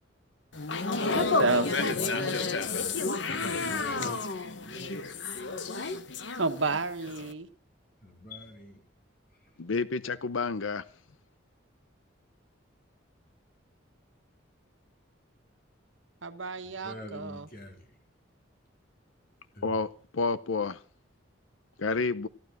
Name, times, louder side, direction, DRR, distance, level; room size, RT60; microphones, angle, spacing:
sound 1, 0.5-6.8 7.1-7.3, left 3 dB, 65° left, 1.1 m, -30 dB
voice 1, 1.1-2.4 6.4-7.5 16.2-17.5, right 3 dB, 75° right, 9 dB, 1.4 m, -31 dB
voice 2, 3.3-4.2 4.6-4.9 8.0-8.8 16.8-17.8 19.6-19.7, equal, 50° left, 3 dB, 3.5 m, -43 dB
voice 3, 9.6-10.8 19.6-20.8 21.8-22.3, left 4 dB, 85° left, 16 dB, 0.7 m, -30 dB
15.0 x 12.0 x 6.1 m, 0.40 s
head